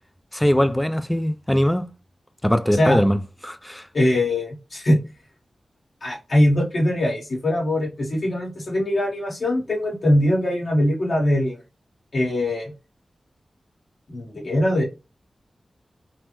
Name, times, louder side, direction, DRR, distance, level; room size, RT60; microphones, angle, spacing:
voice 1, 0.3-1.9 2.4-3.8, equal, 5° left, 0.3 m, -21 dB
voice 2, 2.7-3.1 3.9-5.0 6.0-11.6 12.1-12.7 14.1-14.8, left 1 dB, 65° left, 1.1 m, -21 dB
3.3 x 2.0 x 3.0 m
cardioid pair, 60°, 0 cm